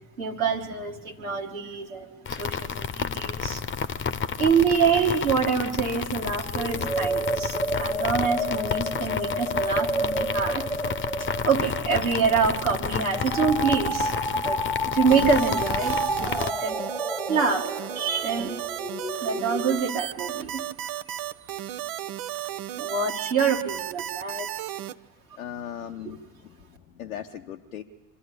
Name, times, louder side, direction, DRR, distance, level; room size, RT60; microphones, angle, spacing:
voice 1, 0.2-3.7 4.4-10.7 11.4-14.6 14.9-16.8 17.3-17.7 17.9-18.5 19.2-20.7 21.7-21.8 22.8-24.5 26.0-26.1, right 5 dB, 85° right, -2 dB, 1.7 m, -26 dB
sound 1, 2.3-16.5, left 7 dB, 30° left, 0.9 m, -31 dB
sound 2, 6.5-19.8, equal, ahead, 0.8 m, -30 dB
sound 3, 15.1-24.9, right 12 dB, 55° right, 0.8 m, -34 dB
voice 2, 25.3-27.8, left 9 dB, 80° left, 3 dB, 0.9 m, -39 dB
25.5 x 13.0 x 8.4 m, 1.2 s
figure-of-eight pair, 55°, 41 cm